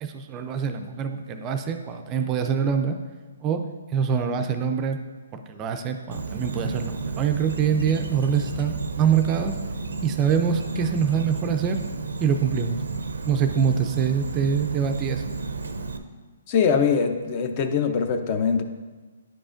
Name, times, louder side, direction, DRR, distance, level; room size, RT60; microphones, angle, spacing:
voice 1, 0.0-3.0 3.4-3.6 3.9-5.0 5.3-9.6 10.0-11.8 12.2-12.8 13.2-15.2, right 7 dB, 25° right, 6 dB, 0.4 m, -24 dB
Insect, 6.1-16.0, right 4 dB, 90° right, 0.5 m, -32 dB
voice 2, 16.5-18.6, left 6 dB, 35° left, 7 dB, 0.6 m, -22 dB
10.0 x 4.8 x 2.5 m, 1.3 s
hypercardioid pair, 150°, 0 cm